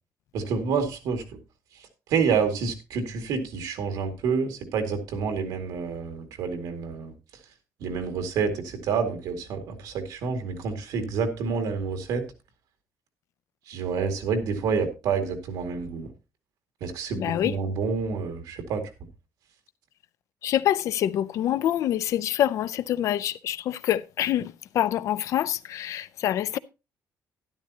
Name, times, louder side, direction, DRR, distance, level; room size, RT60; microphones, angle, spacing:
voice 1, 0.3-1.4 2.1-7.1 7.8-12.2 13.7-16.1 16.8-18.9, right 5 dB, 80° right, 2.3 m, -28 dB
voice 2, 17.1-17.6 20.4-26.6, left 11 dB, 55° left, 0.4 m, -26 dB
12.5 x 11.0 x 2.8 m
cardioid pair, 180°, 6 cm